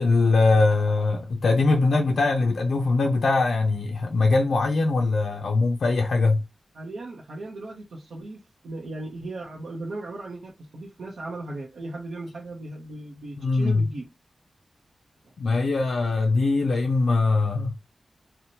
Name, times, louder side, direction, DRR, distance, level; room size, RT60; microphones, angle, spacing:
voice 1, 0.0-6.4 13.4-13.9 15.4-17.7, left 3 dB, 80° left, 0.4 m, -22 dB
voice 2, 6.7-14.1 15.2-15.3, right 2 dB, 85° right, 0.6 m, -37 dB
2.8 x 2.1 x 2.7 m
wide cardioid pair, 150°, 0 cm